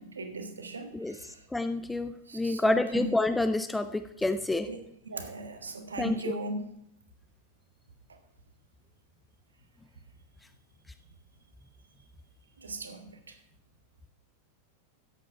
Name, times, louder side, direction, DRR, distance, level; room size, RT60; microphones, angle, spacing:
voice 1, 0.0-1.4 2.3-3.1 4.7-4.8 5.0-6.6 12.6-13.3, right 2 dB, 75° right, 7 dB, 1.5 m, -38 dB
voice 2, 1.5-4.7 6.0-6.4, left 2 dB, 5° left, 10 dB, 0.5 m, -28 dB
12.0 x 8.4 x 4.8 m, 0.73 s
figure-of-eight pair, 90°, 0 cm